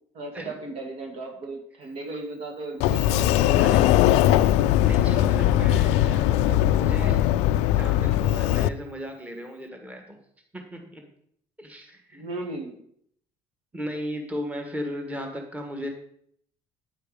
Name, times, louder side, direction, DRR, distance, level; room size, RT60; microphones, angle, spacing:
voice 1, 0.1-3.7 12.1-12.9, right 2 dB, 65° right, 2 dB, 2.1 m, -36 dB
Sliding door, 2.8-8.7, left 12 dB, 80° left, 0.4 m, -20 dB
voice 2, 3.5-3.9 4.8-7.2 7.7-10.2 10.5-11.1 11.6-12.2 13.7-15.9, equal, 15° right, 3 dB, 1.6 m, -36 dB
9.0 x 5.7 x 5.0 m, 0.66 s
cardioid pair, 110°, 11 cm